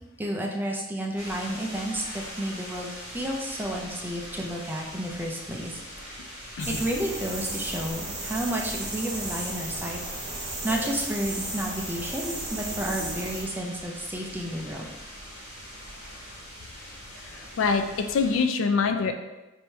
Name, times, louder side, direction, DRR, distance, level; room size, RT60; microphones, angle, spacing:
voice 1, 0.2-5.8 6.4-10.3 10.6-14.9, right 1 dB, 10° right, -1 dB, 0.4 m, -31 dB
sound 1, 1.2-18.4, equal, 45° left, 1.2 m, -42 dB
sound 2, 6.6-13.4, right 2 dB, 35° right, 1.1 m, -35 dB
voice 2, 17.3-19.1, left 5 dB, 65° left, 7 dB, 0.3 m, -25 dB
3.4 x 2.7 x 4.4 m, 1.1 s
head